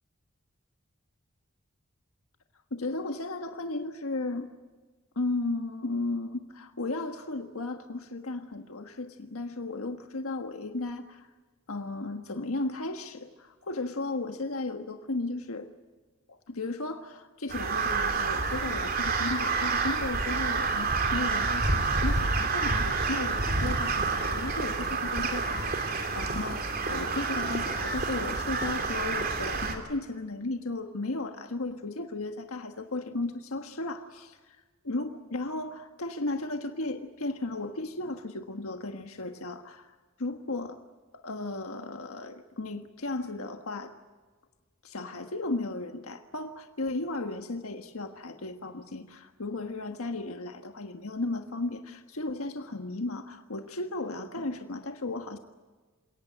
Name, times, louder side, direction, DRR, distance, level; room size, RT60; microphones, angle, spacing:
voice 1, 2.7-4.5 5.1-11.3 11.7-15.7 16.3-34.6 34.8-40.8 41.1-44.0 44.8-55.4, left 2 dB, 85° left, 6 dB, 1.5 m, -35 dB
Crow, 17.5-29.8, right 4 dB, 45° right, 3.1 m, -28 dB
28.0 x 18.0 x 9.1 m, 1.4 s
head